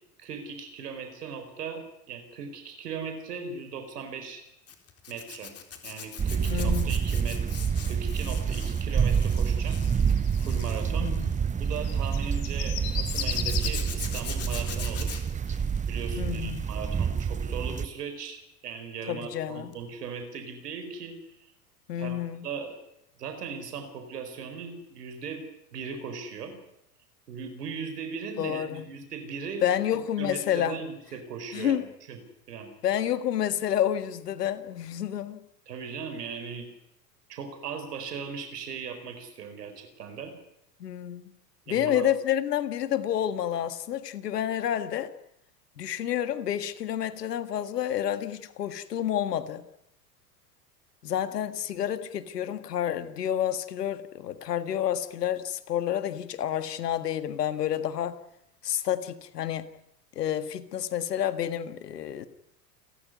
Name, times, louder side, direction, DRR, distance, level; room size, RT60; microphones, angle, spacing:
voice 1, 0.2-4.4 5.1-5.5 5.8-7.4 7.9-9.8 10.4-11.1 11.6-15.2 15.5-21.5 22.0-22.7 23.2-25.4 25.7-26.5 27.3-29.6 30.2-32.2 32.5-32.7 35.7-36.7 37.3-40.3 41.7-42.1, right 5 dB, 75° right, 7 dB, 4.9 m, -38 dB
Zipper (clothing), 4.7-12.1 13.0-16.7 17.0-17.4 19.7-19.9 20.1-20.2, left 7 dB, 30° left, 4.0 m, -42 dB
sound 1, 6.2-17.9, right 7 dB, 15° right, 0.9 m, -28 dB
voice 2, 6.5-7.0 10.9-11.4 16.2-16.7 19.1-19.7 21.9-22.5 28.4-28.8 29.6-30.8 31.5-31.9 32.8-35.5 40.8-41.2 41.7-45.1 45.8-49.6 51.0-58.2 58.6-59.7 60.2-62.3, left 10 dB, 75° left, 12 dB, 1.9 m, -29 dB
sound 2, 7.5-10.8 11.7-13.9, left 10 dB, 55° left, 4.1 m, -36 dB
29.0 x 14.0 x 9.6 m, 0.82 s
hypercardioid pair, 85°, 48 cm